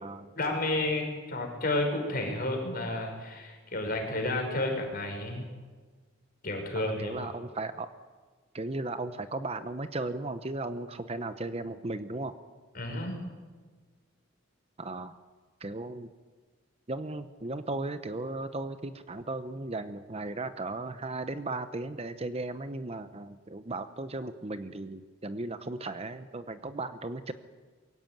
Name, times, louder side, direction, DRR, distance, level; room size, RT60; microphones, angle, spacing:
voice 1, 0.4-5.5 6.4-7.2 12.7-13.2, left 2 dB, 45° left, 2 dB, 5.7 m, -31 dB
voice 2, 6.7-7.9 8.5-12.4 14.8-15.2 15.6-16.1 16.9-27.3, right 2 dB, 30° right, 10 dB, 0.8 m, -36 dB
22.5 x 17.0 x 9.2 m, 1.4 s
head